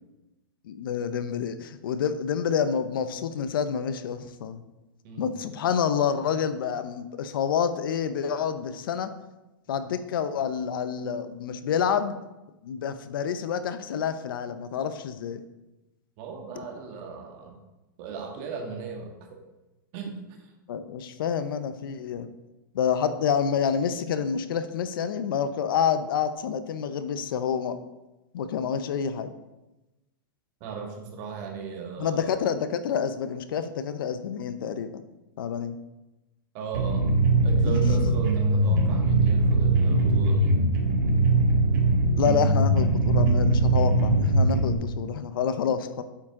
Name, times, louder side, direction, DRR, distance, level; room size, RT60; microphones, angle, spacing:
voice 1, 0.6-4.6 5.2-9.1 9.7-12.2 12.6-15.4 20.7-22.3 22.7-27.8 28.3-29.3 32.0-35.0 35.4-35.8 37.6-38.1 42.2-46.0, left 7 dB, 70° left, 11 dB, 0.7 m, -28 dB
voice 2, 16.2-17.6 18.0-19.4 19.9-20.4 30.6-32.4 36.5-37.1 37.4-40.6, right 5 dB, 40° right, 1 dB, 2.0 m, -37 dB
sound 1, 36.7-44.7, right 2 dB, 65° right, 1.9 m, -21 dB
8.7 x 7.3 x 3.7 m, 1.0 s
hypercardioid pair, 145°, 12 cm